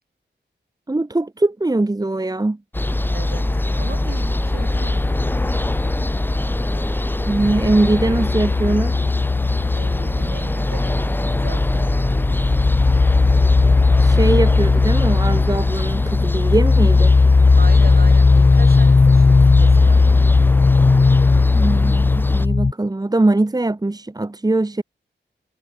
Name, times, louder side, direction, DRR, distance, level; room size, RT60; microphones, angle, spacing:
voice 1, 0.9-2.6 7.3-9.0 14.0-17.1 21.5-24.8, right 2 dB, 20° right, 1.6 m, -21 dB
sound 1, 2.7-22.5, left 1 dB, 10° left, 0.7 m, -24 dB
sound 2, 2.8-6.6 6.9-22.7, left 3 dB, 35° left, 1.3 m, -17 dB
voice 2, 3.1-5.1 9.7-12.4 17.6-20.3, right 4 dB, 55° right, 7.3 m, -37 dB
wide cardioid pair, 105°, 19 cm